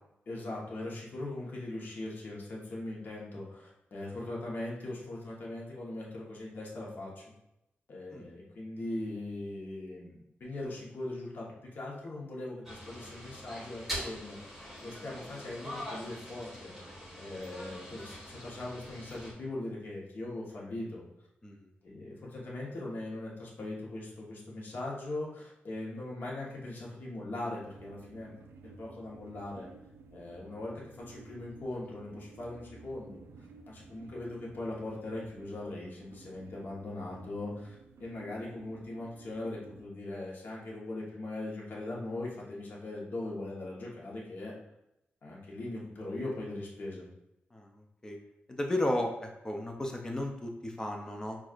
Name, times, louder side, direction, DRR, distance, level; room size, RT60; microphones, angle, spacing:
voice 1, 0.3-7.2 7.9-11.5 11.7-16.7 17.2-21.0 21.8-28.3 28.8-29.7 30.1-33.2 33.7-37.7 38.0-44.5 45.2-47.1, left 2 dB, 50° left, -4 dB, 1.1 m, -40 dB
sound 1, 12.6-19.3, equal, 5° right, 1.2 m, -43 dB
sound 2, 27.6-39.9, right 4 dB, 90° right, 0.3 m, -54 dB
voice 2, 47.5-48.2 48.5-51.4, left 1 dB, 15° left, 2 dB, 0.4 m, -34 dB
6.0 x 2.4 x 2.4 m, 0.84 s
wide cardioid pair, 160°, 4 cm